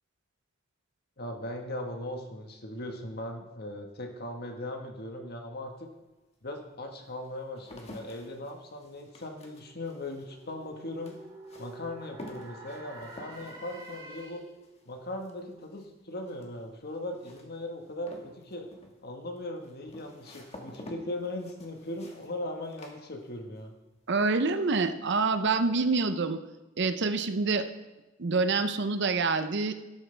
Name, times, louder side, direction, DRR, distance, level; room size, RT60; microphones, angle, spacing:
voice 1, 1.2-5.9 6.4-11.2 11.6-14.4 14.8-18.7 19.0-23.7, left 1 dB, 50° left, 3 dB, 1.6 m, -39 dB
sound 1, 5.7-5.8 6.5-23.7 24.0-24.5, left 1 dB, 30° left, 1.6 m, -50 dB
sound 2, 8.6-14.6, right 2 dB, 25° right, 3.4 m, -49 dB
voice 2, 24.1-26.4 26.8-27.7 28.2-29.7, right 4 dB, 60° right, 10 dB, 0.7 m, -26 dB
12.5 x 12.5 x 3.4 m, 1.1 s
head